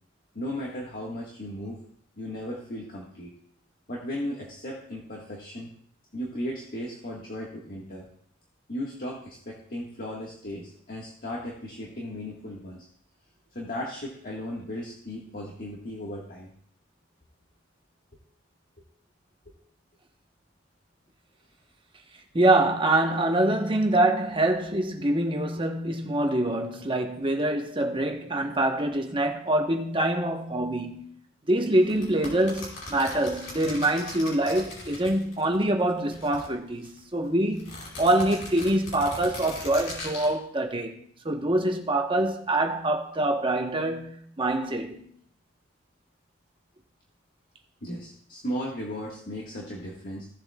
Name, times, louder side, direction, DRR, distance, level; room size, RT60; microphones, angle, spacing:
voice 1, 0.3-1.8 2.2-3.3 3.9-5.7 6.1-8.1 8.7-12.8 13.5-16.5 19.4-19.5 47.8-50.3, equal, 45° left, 1.6 m, -36 dB
voice 2, 22.3-31.0 31.5-41.0 41.2-45.1, right 1 dB, 25° right, 1.1 m, -25 dB
sound 1, 31.8-35.6 35.9-37.0 37.5-40.3, left 2 dB, 65° left, 4.6 m, -40 dB
16.5 x 7.7 x 2.3 m
head